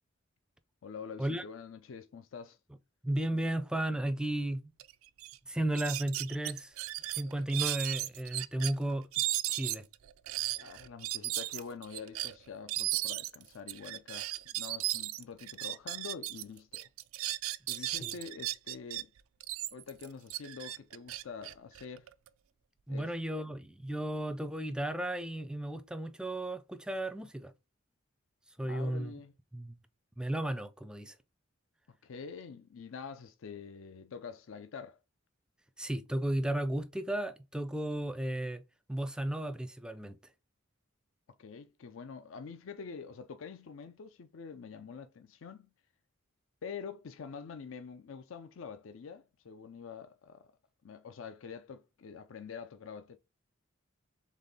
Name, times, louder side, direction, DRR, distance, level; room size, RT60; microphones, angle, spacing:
voice 1, 0.8-2.6 10.5-16.9 17.7-19.1 19.7-22.1 22.9-23.1 28.6-29.3 32.0-35.0 41.4-45.7 46.6-50.5 50.8-53.2, left 6 dB, 75° left, 0.4 m, -46 dB
voice 2, 3.0-4.7 5.5-6.8 7.1-9.1 9.5-9.8 17.8-18.1 22.9-27.5 28.6-29.1 29.5-29.8 30.2-31.2 35.8-38.6 38.9-40.2, right 1 dB, 5° right, 0.4 m, -34 dB
sound 1, 4.8-4.9 5.2-5.4 5.7-8.7 9.1-16.4 16.7-19.0 19.4-22.3, right 16 dB, 85° right, 0.4 m, -36 dB
4.1 x 3.5 x 3.5 m
head